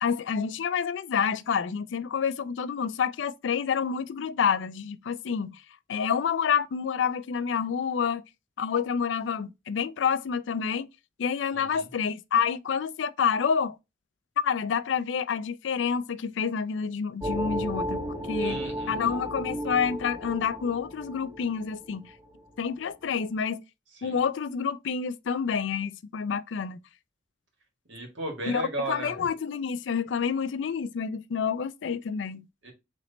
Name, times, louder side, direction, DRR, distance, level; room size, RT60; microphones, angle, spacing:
voice 1, 0.0-5.6 5.9-8.2 8.6-10.9 11.2-13.8 14.4-18.6 18.9-22.1 22.6-23.6 24.0-26.8 28.5-32.5, left 6 dB, 70° left, 0.4 m, -28 dB
voice 2, 11.5-11.9 18.4-19.0 24.0-24.2 27.9-29.3 32.6-32.7, right 2 dB, 75° right, 1.7 m, -35 dB
sound 1, 17.2-22.5, equal, 20° right, 0.6 m, -33 dB
4.1 x 3.1 x 3.9 m
head